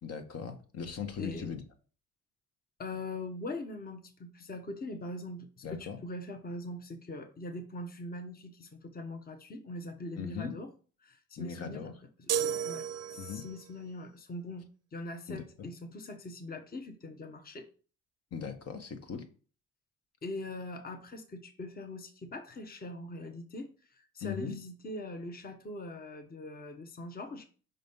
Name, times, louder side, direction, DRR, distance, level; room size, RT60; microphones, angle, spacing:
voice 1, 0.0-1.6 5.6-6.0 10.2-10.5 11.4-11.9 13.2-13.4 15.3-15.7 18.3-19.3 24.2-24.5, left 6 dB, 55° left, 6 dB, 1.2 m, -39 dB
voice 2, 1.2-1.5 2.8-10.7 11.0-11.9 12.2-12.3 12.6-12.9 13.1-17.7 20.2-27.4, left 2 dB, 30° left, 6 dB, 1.0 m, -42 dB
sound 1, 12.3-13.6, right 9 dB, 55° right, 0.6 m, -33 dB
5.4 x 4.1 x 5.4 m, 0.39 s
cardioid pair, 90°, 30 cm